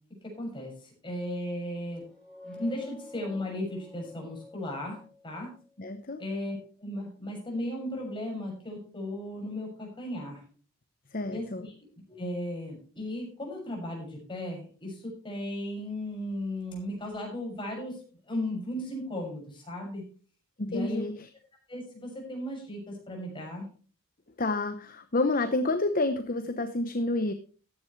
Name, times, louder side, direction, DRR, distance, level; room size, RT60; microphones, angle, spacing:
voice 1, 0.2-2.1 2.4-5.5 6.2-10.4 11.3-11.7 12.1-18.0 18.3-20.1 20.7-21.0 21.7-23.7, left 1 dB, 20° left, -1 dB, 6.5 m, -36 dB
sound 1, 2.0-5.6, left 2 dB, 5° left, 3.2 m, -48 dB
voice 2, 5.8-6.2 11.1-11.6 20.6-21.3 24.4-27.3, left 2 dB, 40° left, 9 dB, 0.9 m, -29 dB
14.5 x 11.0 x 3.2 m, 0.40 s
head